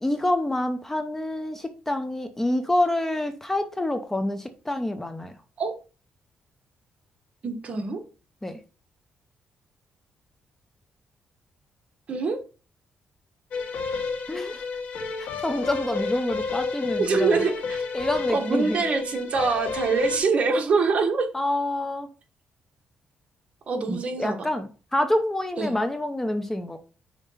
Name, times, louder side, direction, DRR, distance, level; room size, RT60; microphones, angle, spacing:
voice 1, 0.0-5.4 8.4-8.6 14.3-14.6 15.2-17.4 17.9-18.8 21.3-22.1 23.9-26.8, left 1 dB, 10° left, 0.7 m, -27 dB
voice 2, 7.4-8.0 12.1-12.4 17.0-17.8 18.3-21.3 23.7-24.4 25.6-25.7, right 4 dB, 45° right, 1.4 m, -24 dB
sound 1, 13.5-20.2, left 4 dB, 75° left, 1.4 m, -31 dB
5.5 x 4.7 x 5.6 m
cardioid pair, 125°, 3 cm